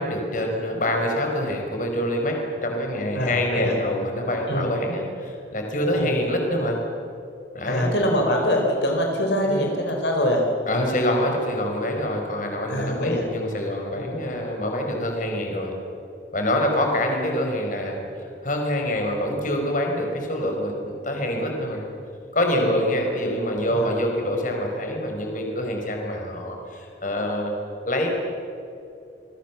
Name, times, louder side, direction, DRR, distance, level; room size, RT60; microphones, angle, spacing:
voice 1, 0.0-6.8 7.5-7.9 9.5-9.6 10.7-15.7 16.3-18.0 18.4-21.8 22.3-27.5 27.9-28.1, left 1 dB, 45° left, 2 dB, 5.1 m, -25 dB
voice 2, 3.1-3.8 4.5-4.7 6.0-6.2 7.7-10.4 12.7-13.2 14.0-14.1 22.6-22.7 23.7-23.9, equal, 75° left, 1 dB, 4.4 m, -24 dB
28.5 x 22.0 x 7.3 m, 2.6 s
head